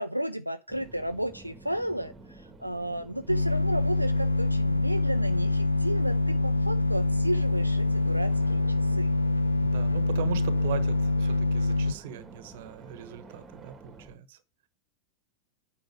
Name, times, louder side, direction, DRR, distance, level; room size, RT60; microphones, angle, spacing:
voice 1, 0.0-9.1, right 1 dB, 90° right, 0.5 m, -33 dB
sound 1, 0.7-14.1, right 3 dB, 15° right, 1.8 m, -50 dB
sound 2, 3.3-11.9, left 2 dB, 90° left, 0.5 m, -25 dB
voice 2, 9.6-14.4, right 9 dB, 55° right, 1.2 m, -39 dB
9.1 x 5.8 x 4.9 m
figure-of-eight pair, 90°, 0 cm